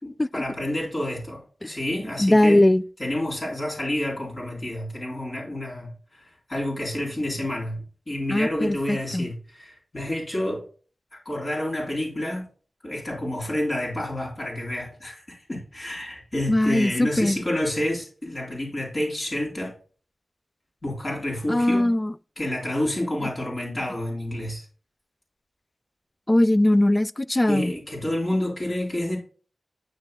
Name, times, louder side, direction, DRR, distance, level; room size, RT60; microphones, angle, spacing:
voice 1, 0.0-2.6 3.0-6.2 6.5-10.6 11.1-12.5 12.8-19.7 20.8-21.9 22.4-24.6 27.5-29.2, left 1 dB, 45° left, 4.1 m, -29 dB
voice 2, 2.2-2.8 8.3-9.3 16.5-17.4 21.5-22.1 26.3-27.7, left 1 dB, 25° left, 0.3 m, -20 dB
8.9 x 6.8 x 2.3 m
cardioid pair, 55°, 0 cm